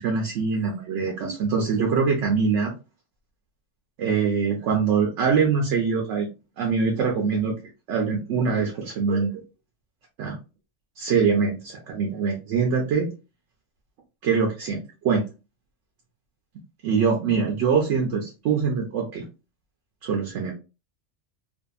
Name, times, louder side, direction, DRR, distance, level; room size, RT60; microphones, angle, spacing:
voice 1, 0.0-2.7 4.0-6.3 6.6-7.5 7.9-9.4 10.2-10.4 11.0-13.1 14.2-15.2 16.8-19.3 20.0-20.5, right 5 dB, 75° right, 1 dB, 0.9 m, -23 dB
2.6 x 2.5 x 2.3 m, 0.30 s
omnidirectional pair, 1.3 m